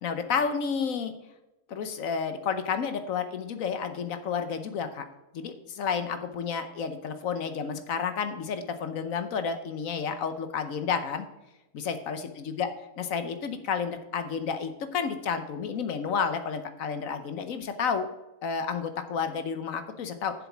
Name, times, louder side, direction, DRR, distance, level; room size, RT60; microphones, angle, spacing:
voice 1, 0.0-1.1 1.7-5.1 5.3-11.2 11.7-12.7 13.0-18.1 18.4-20.3, left 6 dB, 65° left, 9 dB, 1.2 m, -31 dB
7.4 x 7.2 x 6.0 m, 0.99 s
omnidirectional pair, 1.6 m